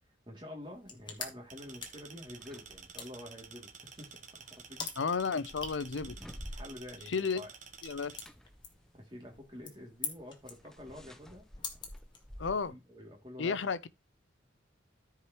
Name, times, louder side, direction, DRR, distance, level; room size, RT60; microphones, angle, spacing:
voice 1, 0.3-4.1 4.5-5.0 6.0-7.5 8.9-11.5 12.4-13.7, left 1 dB, 25° right, 2.7 m, -48 dB
sound 1, 0.6-12.7, left 5 dB, 25° left, 1.3 m, -47 dB
sound 2, 1.0-1.3 1.8-2.9 3.8-7.2 7.5-12.7, equal, ahead, 0.4 m, -51 dB
sound 3, 1.5-8.3, right 6 dB, 40° right, 1.0 m, -51 dB
voice 2, 5.0-6.2 7.1-7.4 7.8-8.2 12.4-12.7 13.4-13.9, left 5 dB, 65° left, 0.6 m, -32 dB
13.5 x 4.9 x 3.0 m
head